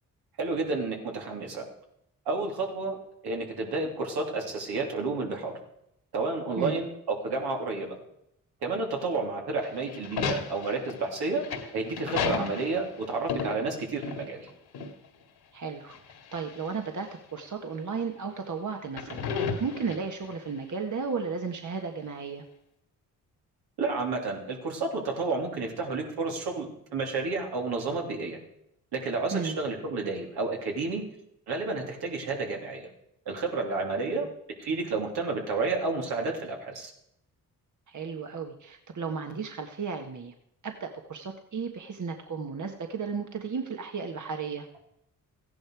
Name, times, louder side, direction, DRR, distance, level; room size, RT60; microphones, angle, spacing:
voice 1, 0.4-1.7 2.2-3.0 3.2-5.6 6.1-8.0 8.6-11.5 11.7-14.5 23.8-28.4 28.9-31.0 31.5-32.9 33.2-34.3 34.6-36.9, right 3 dB, 80° right, 0 dB, 3.2 m, -31 dB
sound 1, 9.6-14.5 14.7-14.9 15.9-16.7 17.4-17.5 18.8-20.3, left 5 dB, 80° left, 2.1 m, -33 dB
voice 2, 15.5-15.9 16.3-19.3 19.6-22.4 29.3-29.6 34.2-34.3 37.9-40.3 40.6-44.7, right 5 dB, 50° right, 5 dB, 1.5 m, -34 dB
15.0 x 10.5 x 4.8 m, 0.78 s
supercardioid pair, 50°, 38 cm